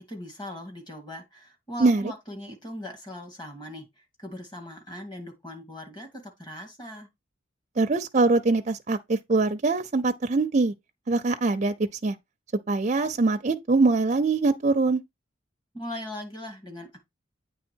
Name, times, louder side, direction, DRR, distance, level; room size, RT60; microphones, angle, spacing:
voice 1, 0.0-7.1 15.7-17.0, left 1 dB, 20° left, 2.0 m, -39 dB
voice 2, 7.8-10.7 11.1-11.7 12.0-12.2 12.7-15.0, right 3 dB, 35° right, 0.5 m, -23 dB
8.6 x 3.4 x 4.4 m
head